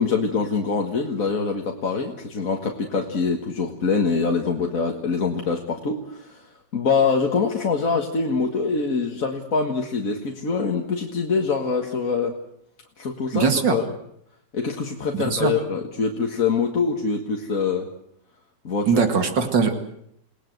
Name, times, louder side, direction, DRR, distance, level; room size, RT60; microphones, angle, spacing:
voice 1, 0.0-6.4 6.7-12.4 13.0-13.8 14.5-17.9 18.6-19.0, left 5 dB, 50° left, 2 dB, 2.1 m, -24 dB
voice 2, 13.3-13.8 15.1-15.6 18.9-19.8, right 5 dB, 90° right, 6 dB, 2.9 m, -21 dB
29.0 x 19.0 x 8.0 m, 0.73 s
omnidirectional pair, 1.9 m